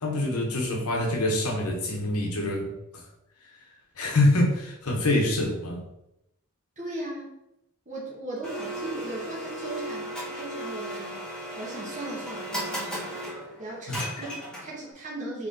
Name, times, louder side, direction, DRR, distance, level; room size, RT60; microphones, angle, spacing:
voice 1, 0.0-3.0 4.0-5.8 13.9-14.1, left 1 dB, 85° left, 1 dB, 1.0 m, -25 dB
voice 2, 6.8-7.3 7.8-13.2 13.6-15.5, right 2 dB, 35° right, -5 dB, 1.3 m, -38 dB
Domestic sounds home sounds, 8.4-14.9, right 1 dB, 5° left, 1.1 m, -36 dB
3.9 x 3.3 x 3.8 m, 0.85 s
head